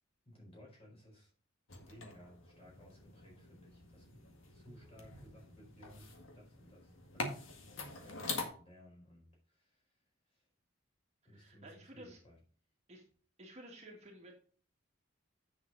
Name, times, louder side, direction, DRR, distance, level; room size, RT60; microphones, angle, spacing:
voice 1, 0.2-1.3 1.7-4.2 4.5-10.0 10.3-10.5 11.2-12.4, equal, 30° left, -2 dB, 4.4 m, -59 dB
sound 1, 1.7-8.5, left 3 dB, 65° left, 1.9 m, -45 dB
voice 2, 11.3-12.2 12.9-13.1 13.4-14.3, right 1 dB, 35° right, -1 dB, 2.0 m, -53 dB
8.5 x 6.9 x 3.9 m, 0.43 s
head